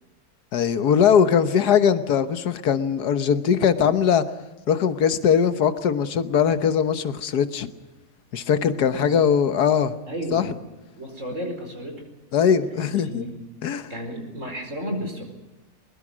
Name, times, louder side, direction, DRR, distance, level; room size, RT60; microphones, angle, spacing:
voice 1, 0.5-4.2 4.7-7.7 8.3-9.9 10.3-10.4 12.3-13.2 13.6-13.9, left 7 dB, 80° left, 11 dB, 1.7 m, -20 dB
voice 2, 10.1-10.5 11.0-12.0 13.0-13.3 13.9-15.2, equal, 50° right, 4 dB, 5.1 m, -32 dB
22.0 x 21.5 x 6.2 m, 1.1 s
omnidirectional pair, 1.7 m